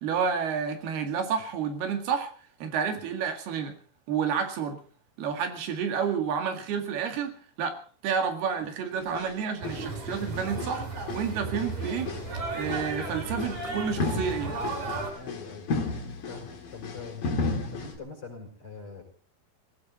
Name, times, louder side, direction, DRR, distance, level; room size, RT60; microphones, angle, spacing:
voice 1, 0.0-2.3 2.6-3.7 4.1-4.8 5.2-7.8 8.0-10.9 11.1-12.1 12.5-14.5, right 6 dB, 80° right, 5 dB, 4.0 m, -30 dB
sound 1, 9.0-9.4 9.6-10.8 11.1-12.3 12.6-13.0 13.4-13.6 14.0-18.0, left 3 dB, 60° left, 4.1 m, -34 dB
sound 2, 9.6-15.1, right 3 dB, 45° right, 6.0 m, -34 dB
voice 2, 15.2-15.8 16.3-17.3 17.7-19.0, left 4 dB, 35° left, 2 dB, 6.4 m, -43 dB
19.0 x 17.0 x 4.1 m, 0.43 s
omnidirectional pair, 4.5 m